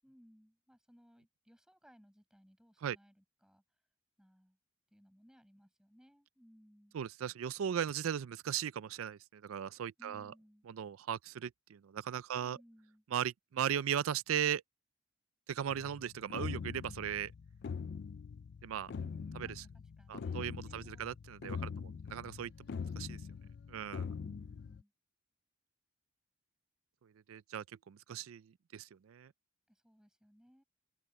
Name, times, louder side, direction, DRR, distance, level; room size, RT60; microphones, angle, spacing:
voice 1, 0.0-3.6 4.2-4.6 4.9-7.0 10.0-10.7 12.3-13.0 19.0-21.0 21.6-22.1 24.1-24.9 29.7-30.6, equal, 5° right, 7.4 m, -63 dB
voice 2, 6.9-10.3 10.8-12.6 13.1-14.6 15.5-17.3 18.6-18.9 20.1-21.6 22.1-22.5 23.0-23.2 23.7-24.1 27.3-28.4 28.7-29.3, right 9 dB, 80° right, 0.4 m, -37 dB
sound 1, 15.7-24.8, left 5 dB, 55° left, 0.4 m, -43 dB
open air
head